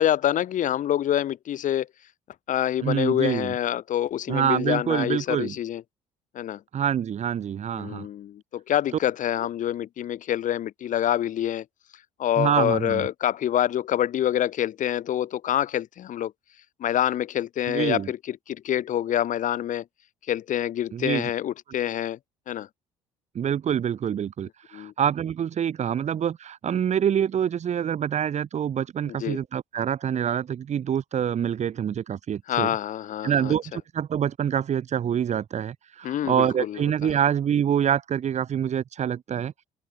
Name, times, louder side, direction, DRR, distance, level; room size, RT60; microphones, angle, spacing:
voice 1, 0.0-1.9 2.5-5.8 6.3-6.6 7.8-11.6 12.2-16.3 16.8-19.8 20.3-22.2 22.5-22.7 24.7-24.9 29.1-29.4 32.5-33.5 36.0-37.2, left 11 dB, 55° left, 5.0 m, -26 dB
voice 2, 2.8-3.5 4.3-5.5 6.7-8.1 12.4-13.1 17.7-18.1 20.9-21.2 23.3-32.7 33.2-39.5, right 9 dB, 45° right, 2.7 m, -26 dB
figure-of-eight pair, 50°, 16 cm